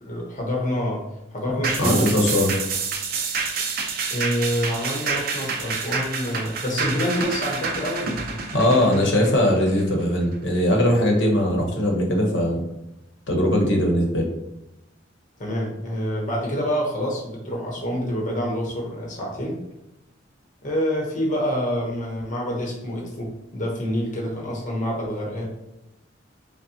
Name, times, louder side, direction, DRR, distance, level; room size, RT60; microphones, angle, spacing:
voice 1, 0.0-1.0 1.3-2.3 4.1-9.1 15.4-19.6 20.6-25.4, equal, 40° left, -2 dB, 0.8 m, -27 dB
sound 1, 1.6-10.3 10.8-10.9, right 5 dB, 50° right, 0.5 m, -28 dB
voice 2, 1.8-2.5 8.5-12.6 13.3-14.3, left 1 dB, 70° left, 1 dB, 1.0 m, -20 dB
5.5 x 2.1 x 2.7 m, 0.91 s
head